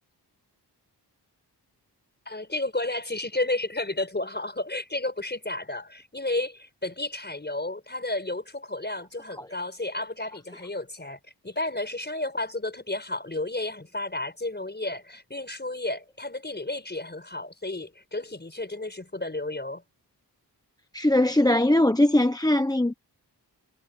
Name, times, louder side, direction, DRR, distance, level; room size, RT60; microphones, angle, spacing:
voice 1, 2.3-19.8, left 2 dB, 25° left, 5.3 m, -32 dB
voice 2, 20.9-22.9, left 1 dB, 10° left, 0.9 m, -20 dB
wide cardioid pair, 85°, 42 cm